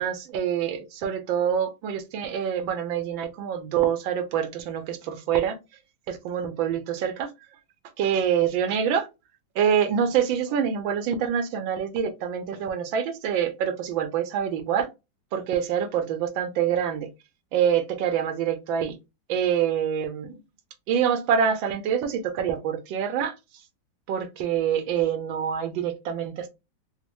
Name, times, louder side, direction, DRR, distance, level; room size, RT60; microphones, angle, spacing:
voice 1, 0.0-5.6 6.1-7.3 8.0-9.1 9.5-14.9 15.3-17.1 17.5-19.0 19.3-20.4 20.9-23.4 24.1-26.5, right 8 dB, 85° right, 1.5 m, -26 dB
4.1 x 2.1 x 2.9 m
omnidirectional pair, 2.0 m